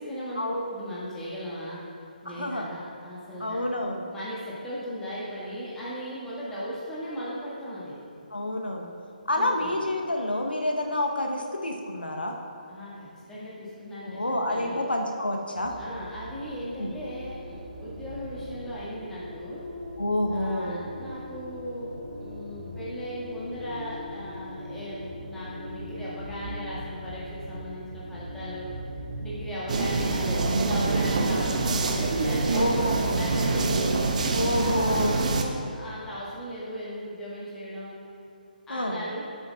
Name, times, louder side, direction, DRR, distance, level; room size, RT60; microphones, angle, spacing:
voice 1, 0.0-0.4 0.7-1.8 2.2-3.6 4.1-8.0 9.3-9.7 12.7-14.8 15.8-19.6 20.3-28.7 29.2-34.1 34.6-37.9 38.7-39.2, equal, 10° left, -8 dB, 1.7 m, -37 dB
voice 2, 2.3-2.7 3.4-4.1 8.3-8.9 9.3-12.3 14.0-15.8 16.8-16.9 20.0-20.8 32.5-33.1 34.3-35.3 38.7-39.0, left 1 dB, 85° left, 2 dB, 0.9 m, -28 dB
sound 1, 15.5-34.3, equal, 65° right, 2.0 m, -40 dB
sound 2, 29.7-35.4, right 3 dB, 50° right, 0.8 m, -25 dB
12.5 x 7.8 x 2.4 m, 2.6 s
figure-of-eight pair, 145°, 5 cm